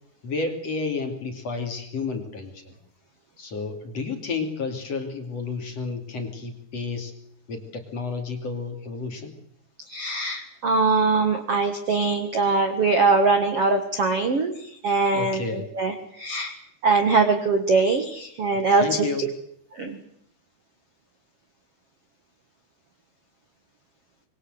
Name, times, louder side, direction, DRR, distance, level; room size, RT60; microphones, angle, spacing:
voice 1, 0.2-2.7 3.4-7.1 7.5-9.3 15.1-15.6 18.8-19.2, left 4 dB, 40° left, 4 dB, 3.3 m, -31 dB
voice 2, 9.9-16.5 16.8-18.8 19.2-19.3 19.7-20.0, right 4 dB, 50° right, 6 dB, 1.8 m, -22 dB
25.5 x 23.5 x 7.9 m, 0.68 s
omnidirectional pair, 5.0 m